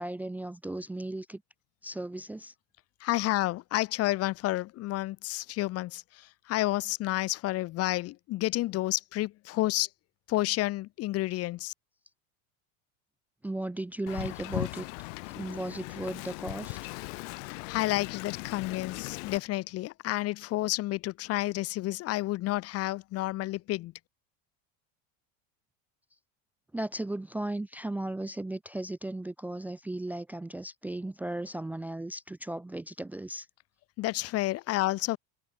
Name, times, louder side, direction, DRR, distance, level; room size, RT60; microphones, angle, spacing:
voice 1, 0.0-1.4 1.8-2.5 13.4-14.9 15.4-16.9 26.7-33.5, right 1 dB, 5° right, 0.6 m, -36 dB
voice 2, 3.0-9.9 10.3-11.7 17.4-23.9 34.0-35.2, left 17 dB, 40° left, 1.0 m, -30 dB
Wind, 14.1-19.4, left 29 dB, 80° left, 0.5 m, -39 dB
cardioid pair, 150°, 37 cm